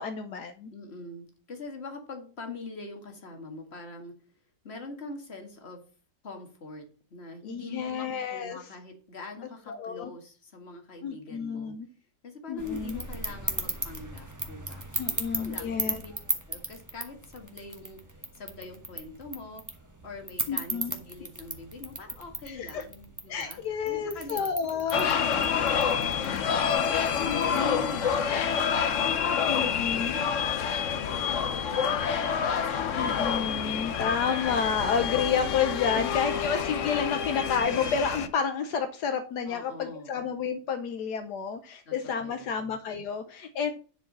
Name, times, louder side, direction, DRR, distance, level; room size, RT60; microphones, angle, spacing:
voice 1, 0.0-0.7 7.4-8.6 9.7-10.1 11.0-11.9 12.5-13.0 15.0-16.0 20.5-21.0 22.5-22.8 23.3-25.1 27.2-27.8 29.5-30.1 31.2-31.3 33.0-43.7, left 6 dB, 75° left, 7 dB, 1.3 m, -30 dB
voice 2, 0.7-4.1 4.6-5.8 6.2-11.7 12.2-14.8 15.3-16.1 16.5-19.6 20.0-24.4 25.1-26.5 27.0-30.5 31.0-33.2 35.9-36.0 39.5-40.2 41.9-42.7, left 3 dB, 35° left, 4 dB, 2.1 m, -44 dB
sound 1, 12.6-28.3, right 2 dB, 10° right, 1.1 m, -38 dB
sound 2, 24.9-38.3, left 7 dB, 55° left, 1.0 m, -28 dB
10.5 x 4.8 x 6.0 m, 0.41 s
omnidirectional pair, 1.8 m